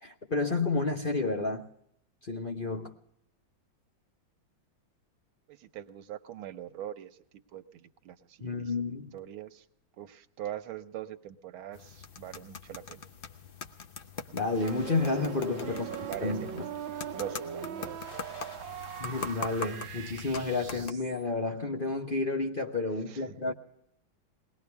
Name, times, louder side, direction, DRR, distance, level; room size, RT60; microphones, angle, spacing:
voice 1, 0.0-1.6 2.2-2.9 8.4-9.1 14.3-15.9 16.2-16.4 19.0-23.5, left 3 dB, 35° left, 0.9 m, -30 dB
voice 2, 5.5-7.2 7.5-8.7 9.1-9.6 10.0-13.0 15.7-16.6 17.1-18.1 23.1-23.4, right 11 dB, 90° right, 1.7 m, -42 dB
sound 1, 11.7-20.9, left 5 dB, 75° left, 0.5 m, -43 dB
sound 2, 14.6-21.2, right 9 dB, 75° right, 1.5 m, -41 dB
22.0 x 19.0 x 3.4 m
omnidirectional pair, 2.2 m